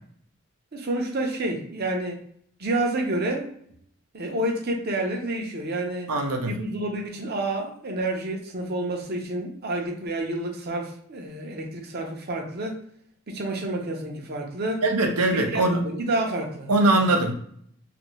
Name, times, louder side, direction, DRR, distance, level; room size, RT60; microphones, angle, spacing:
voice 1, 0.7-2.2 2.6-3.5 4.1-6.1 6.5-12.8 13.3-14.8 15.3-17.0, right 1 dB, 45° right, 2 dB, 0.6 m, -29 dB
voice 2, 6.1-6.5 14.8-15.8 16.7-17.3, right 2 dB, 85° right, 3 dB, 0.7 m, -21 dB
2.6 x 2.5 x 3.0 m, 0.66 s
head